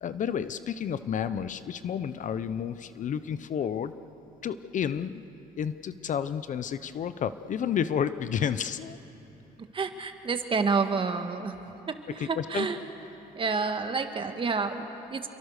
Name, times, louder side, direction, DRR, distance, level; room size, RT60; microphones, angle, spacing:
voice 1, 0.0-3.9 4.4-5.2 5.6-9.0 12.2-12.7, left 8 dB, 50° left, 13 dB, 0.8 m, -31 dB
voice 2, 9.7-11.5 11.9-12.8 13.4-15.3, right 4 dB, 30° right, 7 dB, 1.8 m, -29 dB
29.0 x 23.0 x 6.6 m, 3.0 s
cardioid pair, 110°, 17 cm